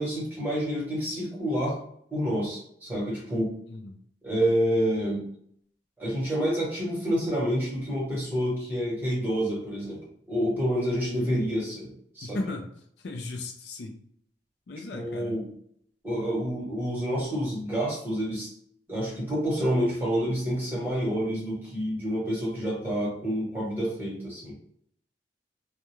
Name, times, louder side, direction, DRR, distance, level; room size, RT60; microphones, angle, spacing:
voice 1, 0.0-1.8 2.1-3.6 4.2-5.3 6.0-10.0 10.3-12.4 14.9-15.5 16.0-18.5 18.9-24.5, equal, 10° right, -5 dB, 1.0 m, -28 dB
voice 2, 3.7-4.0 11.1-11.5 12.2-12.7 13.0-14.0 14.7-15.4, left 2 dB, 65° left, 3 dB, 0.4 m, -36 dB
2.3 x 2.0 x 3.0 m, 0.67 s
head